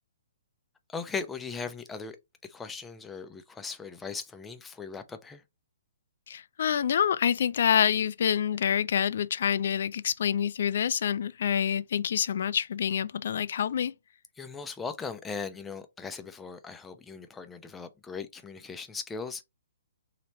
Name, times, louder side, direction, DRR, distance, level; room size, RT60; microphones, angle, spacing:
voice 1, 0.9-2.2 2.5-5.4 14.4-19.4, left 5 dB, 10° left, 0.5 m, -38 dB
voice 2, 6.3-13.9, left 8 dB, 60° left, 0.4 m, -27 dB
3.1 x 2.9 x 4.1 m
hypercardioid pair, 135°, 0 cm